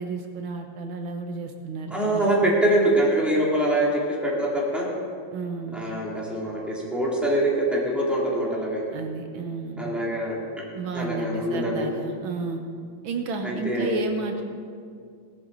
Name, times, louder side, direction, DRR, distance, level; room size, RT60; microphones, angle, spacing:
voice 1, 0.0-2.3 5.3-5.8 8.9-9.9 10.7-12.6 13.0-14.4, right 4 dB, 80° right, 5 dB, 1.8 m, -32 dB
voice 2, 1.9-4.9 5.7-8.8 9.8-10.4 10.9-11.9 13.4-13.9, right 1 dB, ahead, -4 dB, 2.6 m, -24 dB
18.0 x 11.5 x 4.0 m, 2.2 s
omnidirectional pair, 2.2 m